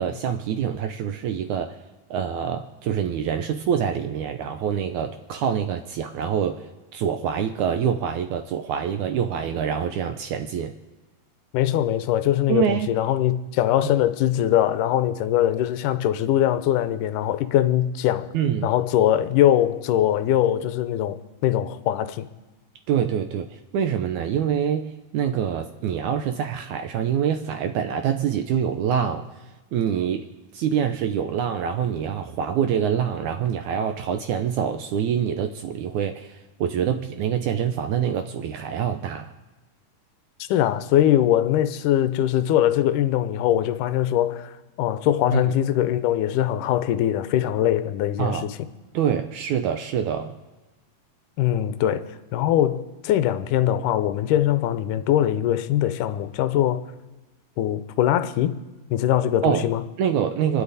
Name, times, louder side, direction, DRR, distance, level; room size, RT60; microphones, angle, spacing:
voice 1, 0.0-1.8 2.1-6.7 6.9-10.7 12.5-12.9 13.8-13.9 18.3-18.7 22.9-29.3 29.7-39.3 45.3-45.4 48.2-48.4 48.9-50.4 59.4-59.6 60.0-60.6, right 8 dB, 85° right, 1.7 m, -25 dB
voice 2, 11.5-18.3 18.6-22.3 40.5-48.6 51.4-56.8 57.6-58.6 58.9-59.8, left 12 dB, 80° left, 2.0 m, -22 dB
29.5 x 9.9 x 4.1 m
omnidirectional pair, 4.2 m